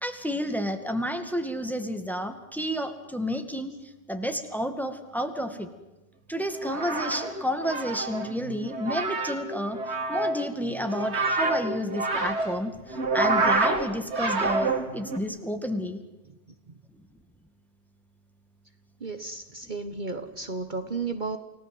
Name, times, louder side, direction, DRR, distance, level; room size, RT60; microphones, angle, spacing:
voice 1, 0.0-5.7 6.3-16.0, equal, ahead, 7 dB, 2.2 m, -31 dB
sound 1, 6.5-15.2, right 3 dB, 85° right, 3.0 m, -28 dB
voice 2, 19.0-21.4, right 4 dB, 45° right, 8 dB, 1.4 m, -33 dB
29.5 x 18.0 x 7.9 m, 1.0 s
omnidirectional pair, 1.1 m